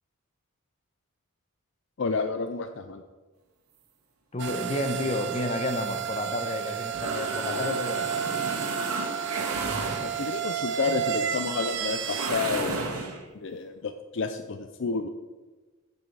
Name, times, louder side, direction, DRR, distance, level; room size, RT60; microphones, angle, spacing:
voice 1, 2.0-3.0 10.0-12.8 13.3-15.1, left 4 dB, 55° left, 8 dB, 0.5 m, -30 dB
voice 2, 4.3-8.1, left 1 dB, 30° left, 6 dB, 0.9 m, -31 dB
sound 1, 4.4-12.3, right 9 dB, 55° right, 0.7 m, -32 dB
sound 2, 5.7-10.5 12.0-13.2, right 3 dB, 90° right, 1.6 m, -32 dB
14.0 x 5.7 x 4.7 m, 1.3 s
head